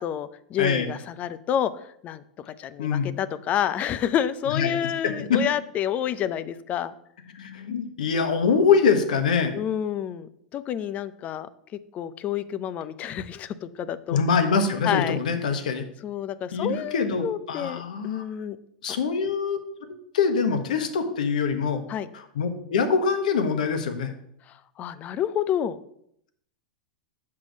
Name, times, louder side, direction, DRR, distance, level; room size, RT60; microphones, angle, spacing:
voice 1, 0.0-1.7 2.0-6.9 9.5-11.5 11.9-14.2 14.8-15.2 16.0-18.6 18.9-19.0 21.9-22.1 24.5-25.8, left 10 dB, 35° left, 15 dB, 0.6 m, -29 dB
voice 2, 0.6-0.9 2.8-3.1 4.5-5.4 7.3-9.5 14.1-15.8 16.5-18.2 18.8-19.6 19.9-21.8 22.1-24.1, left 5 dB, 75° left, 8 dB, 1.3 m, -24 dB
7.6 x 6.0 x 5.2 m, 0.71 s
hypercardioid pair, 100°, 4 cm